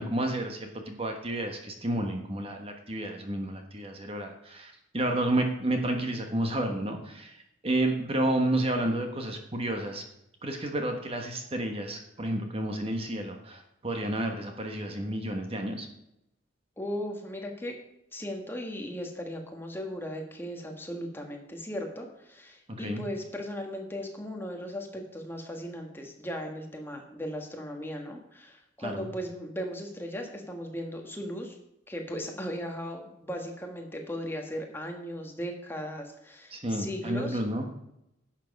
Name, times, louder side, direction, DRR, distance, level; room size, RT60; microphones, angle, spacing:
voice 1, 0.0-10.0 10.4-15.9 22.8-23.0 28.8-29.1 36.5-37.7, right 1 dB, 30° right, 4 dB, 1.3 m, -31 dB
voice 2, 16.8-17.8 18.1-31.6 31.9-37.4, equal, 10° left, 2 dB, 1.4 m, -37 dB
11.0 x 7.4 x 5.3 m, 0.82 s
head